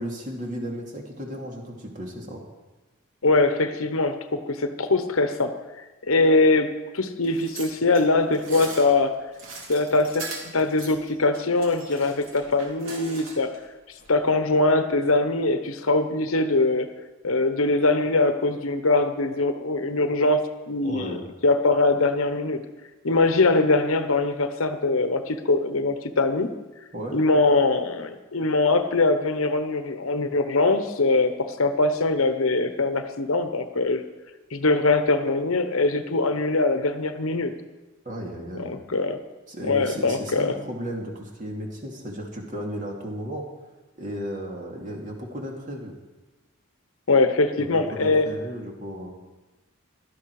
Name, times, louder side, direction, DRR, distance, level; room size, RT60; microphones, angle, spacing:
voice 1, 0.0-2.4 20.8-21.2 26.9-27.2 38.0-38.7 39.5-43.4 44.0-45.9 47.5-49.1, equal, 35° right, 0 dB, 2.7 m, -34 dB
voice 2, 3.2-5.6 6.1-9.2 9.7-13.5 14.1-16.9 17.2-20.4 20.7-22.6 23.0-26.5 27.1-34.0 34.5-37.5 38.5-39.2 39.6-40.6 47.1-48.3, left 3 dB, 80° left, 9 dB, 1.1 m, -22 dB
sound 1, 7.2-13.6 14.0-14.1, right 3 dB, 70° right, 3.1 m, -40 dB
16.5 x 12.5 x 4.9 m, 1.1 s
head